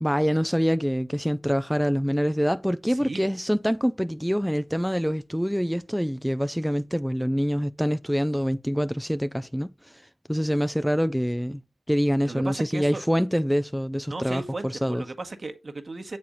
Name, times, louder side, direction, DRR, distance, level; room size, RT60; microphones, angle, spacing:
voice 1, 0.0-11.6 11.9-15.0, equal, ahead, 0.3 m, -25 dB
voice 2, 2.9-3.2 12.2-13.0 14.1-16.2, right 3 dB, 45° right, 1.2 m, -35 dB
6.9 x 4.3 x 5.0 m
cardioid pair, 55°, 0 cm